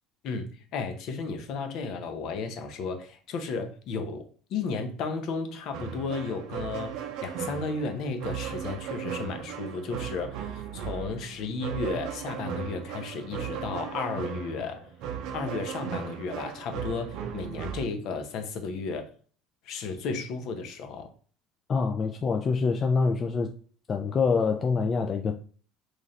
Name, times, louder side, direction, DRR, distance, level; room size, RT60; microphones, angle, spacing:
voice 1, 0.2-14.9 15.3-19.1 19.6-21.1, left 4 dB, 55° left, 0.7 m, -34 dB
sound 1, 5.7-17.9, right 8 dB, 65° right, 0.6 m, -36 dB
voice 2, 21.7-23.5 23.9-25.4, left 4 dB, 30° left, 0.3 m, -25 dB
3.1 x 2.5 x 4.0 m
cardioid pair, 125°, 0 cm